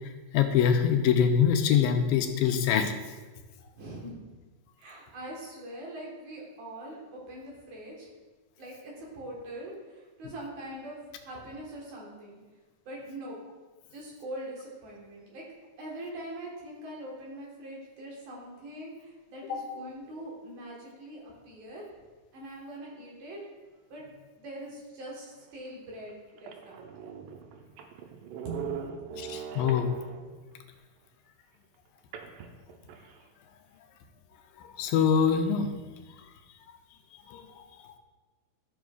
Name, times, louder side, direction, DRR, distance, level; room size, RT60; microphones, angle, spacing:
voice 1, 0.3-2.9 19.5-19.6 29.2-29.9 34.6-35.7 37.3-37.6, left 7 dB, 85° left, 5 dB, 2.3 m, -24 dB
voice 2, 3.7-4.3 4.8-8.1 8.6-12.4 12.9-13.4 13.9-15.5 15.8-21.8 22.3-23.4 23.9-24.1 24.4-27.1 28.4-29.5, right 1 dB, 60° right, -4 dB, 2.6 m, -42 dB
sound 1, 25.4-25.5 26.1-26.2 26.4-30.5 32.1-33.2, right 6 dB, 80° right, 2.1 m, -41 dB
12.0 x 6.2 x 2.3 m, 1.3 s
omnidirectional pair, 4.1 m